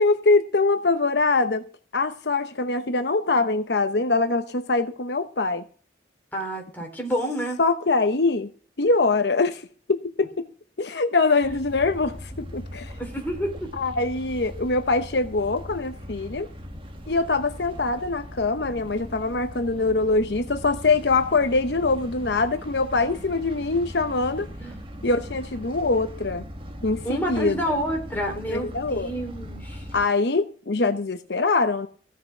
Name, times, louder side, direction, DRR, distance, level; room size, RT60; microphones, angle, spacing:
voice 1, 0.0-1.7 1.9-5.6 7.6-8.5 8.8-10.5 10.8-12.9 13.7-16.5 17.1-24.5 25.0-26.4 26.8-27.8 28.5-29.1 29.9-31.9, left 3 dB, 65° left, 0.9 m, -23 dB
voice 2, 6.3-7.6 13.0-13.7 24.6-24.9 27.0-29.9, equal, 10° left, 3.6 m, -29 dB
sound 1, 11.4-30.1, equal, 30° right, 1.7 m, -39 dB
15.5 x 6.5 x 6.5 m
head